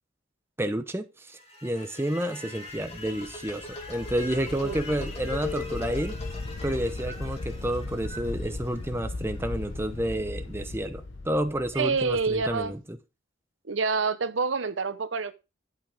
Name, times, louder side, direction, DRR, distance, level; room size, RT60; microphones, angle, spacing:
voice 1, 0.6-6.2 6.6-13.0, right 1 dB, 15° right, 0.8 m, -30 dB
sound 1, 1.3-9.4, left 4 dB, 30° left, 2.1 m, -41 dB
sound 2, 2.7-12.7, left 2 dB, 80° left, 1.0 m, -38 dB
voice 2, 4.5-4.8 11.7-12.7 13.7-15.3, right 4 dB, 85° right, 0.8 m, -27 dB
11.5 x 5.8 x 3.5 m
head